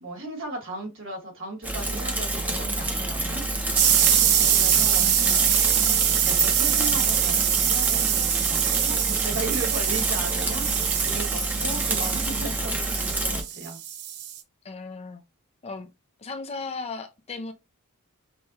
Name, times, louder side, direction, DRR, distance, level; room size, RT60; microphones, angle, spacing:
voice 1, 0.0-3.4 4.5-5.5 6.2-10.7 11.0-13.8, right 2 dB, 60° right, 1.7 m, -36 dB
Bicycle / Mechanisms, 1.6-13.4, right 1 dB, 5° right, 0.7 m, -28 dB
sound 1, 3.8-14.4, right 10 dB, 85° right, 0.6 m, -24 dB
voice 2, 5.0-5.7 14.6-15.2 15.6-15.9 16.2-17.5, left 3 dB, 30° left, 0.4 m, -36 dB
5.4 x 2.2 x 2.7 m
head